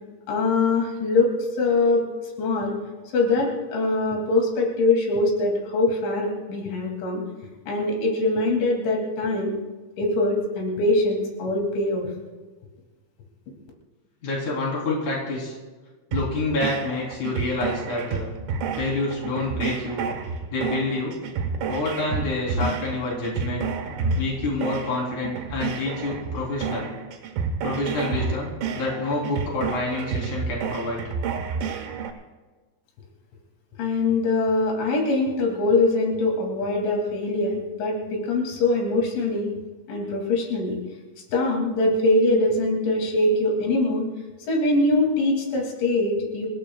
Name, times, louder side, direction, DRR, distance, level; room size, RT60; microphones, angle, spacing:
voice 1, 0.3-2.1 2.4-2.8 3.1-7.2 7.7-9.5 10.0-12.1 33.8-39.5 39.9-40.8 41.3-44.1 44.5-46.5, left 2 dB, 90° left, 0 dB, 5.1 m, -23 dB
voice 2, 14.2-15.6 16.1-18.3 18.8-20.1 20.5-21.2 21.7-23.7 24.2-26.9 27.6-31.0, left 2 dB, 45° left, -3 dB, 4.6 m, -28 dB
sound 1, 16.1-32.1, right 5 dB, 70° right, 3.4 m, -30 dB
27.0 x 17.0 x 2.3 m, 1.3 s
omnidirectional pair, 5.2 m